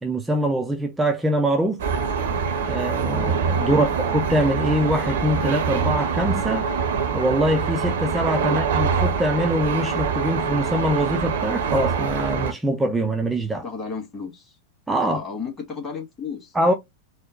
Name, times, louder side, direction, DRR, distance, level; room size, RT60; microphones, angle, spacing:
voice 1, 0.0-1.8 2.7-6.7 7.1-13.6 14.9-15.2 16.5-16.7, equal, 10° right, 0.5 m, -23 dB
sound 1, 1.8-12.5, right 6 dB, 60° right, 0.7 m, -24 dB
voice 2, 13.6-14.6 15.0-16.5, left 5 dB, 20° left, 2.0 m, -33 dB
4.3 x 2.1 x 3.8 m
figure-of-eight pair, 90°, 0 cm